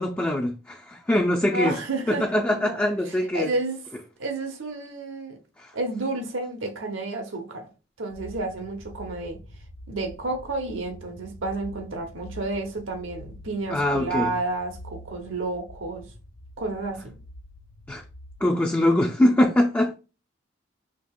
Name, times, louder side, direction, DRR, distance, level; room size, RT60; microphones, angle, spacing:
voice 1, 0.0-1.7 2.1-3.5 5.6-5.7 13.7-14.3 17.9-18.0 18.4-19.9, left 1 dB, 10° left, 0.3 m, -23 dB
voice 2, 1.5-2.8 3.1-3.8 4.2-5.4 5.7-7.7 8.0-9.4 9.9-16.1 16.6-17.2, right 2 dB, 90° right, 0.9 m, -31 dB
sound 1, 8.1-18.5, left 1 dB, 85° left, 1.2 m, -45 dB
5.1 x 2.8 x 2.3 m
head